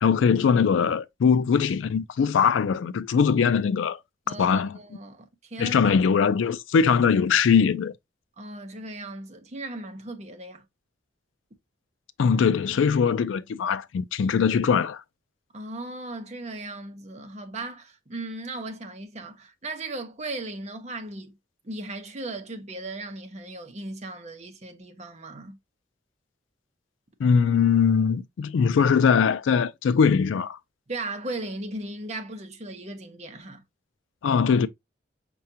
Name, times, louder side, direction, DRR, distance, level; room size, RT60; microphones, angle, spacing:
voice 1, 0.0-4.0 4.4-4.7 5.6-7.9 12.2-15.0 27.2-30.6 34.2-34.7, left 6 dB, 85° left, 0.4 m, -21 dB
voice 2, 4.3-5.9 8.4-10.6 15.5-21.4 21.6-25.6 30.9-33.6, right 2 dB, 35° right, 0.7 m, -37 dB
5.6 x 2.3 x 2.6 m
head